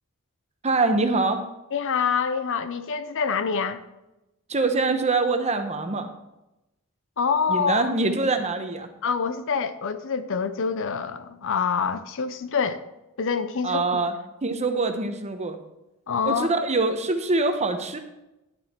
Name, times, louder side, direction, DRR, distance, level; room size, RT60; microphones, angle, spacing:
voice 1, 0.6-1.4 4.5-6.1 7.5-8.9 13.6-14.1 14.4-15.6 16.2-18.0, right 3 dB, 30° right, 0.9 m, -24 dB
voice 2, 1.7-3.8 7.2-7.9 9.0-12.8 13.2-13.9 16.1-16.5, left 6 dB, 60° left, 0.6 m, -26 dB
11.0 x 7.7 x 4.4 m
head